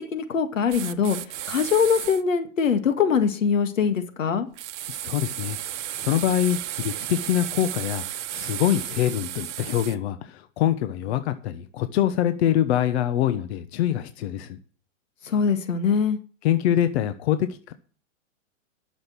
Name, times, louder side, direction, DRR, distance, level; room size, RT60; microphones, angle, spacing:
voice 1, 0.1-1.2 1.5-4.5 15.2-16.2, left 6 dB, 90° left, 1.9 m, -22 dB
sound 1, 0.7-2.2 4.6-10.0, right 13 dB, 65° right, 0.9 m, -33 dB
voice 2, 4.9-5.6 5.9-8.0 8.3-14.6 16.4-17.7, left 11 dB, 55° left, 1.1 m, -24 dB
11.5 x 6.7 x 7.3 m
hypercardioid pair, 135°, 38 cm